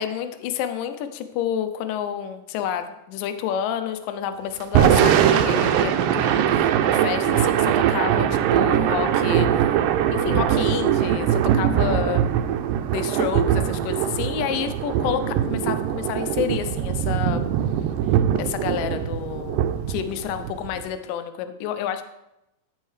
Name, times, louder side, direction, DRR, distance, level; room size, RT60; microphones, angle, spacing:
voice 1, 0.0-9.8 10.1-12.2 12.9-17.5 18.4-22.0, left 9 dB, 85° left, 9 dB, 2.2 m, -29 dB
Thunder / Rain, 4.6-20.9, right 10 dB, 90° right, 2.2 m, -21 dB
13.0 x 5.5 x 3.2 m, 0.90 s
omnidirectional pair, 3.8 m